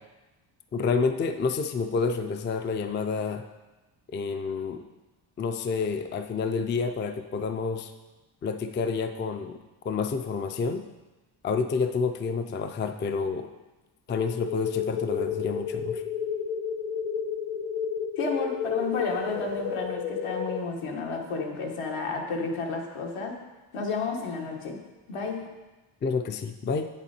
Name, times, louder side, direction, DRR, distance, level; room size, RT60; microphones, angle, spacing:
voice 1, 0.7-3.4 4.1-4.8 5.4-7.9 8.4-9.6 9.8-10.8 11.4-13.5 14.1-16.0 26.0-26.9, left 5 dB, 25° left, 7 dB, 0.3 m, -29 dB
sound 1, 14.2-20.6, left 7 dB, 45° left, 0.9 m, -31 dB
voice 2, 18.2-23.4 23.7-24.8 25.1-25.4, left 4 dB, 80° left, 1 dB, 1.5 m, -31 dB
7.9 x 7.2 x 4.2 m, 1.1 s
cardioid pair, 140°, 49 cm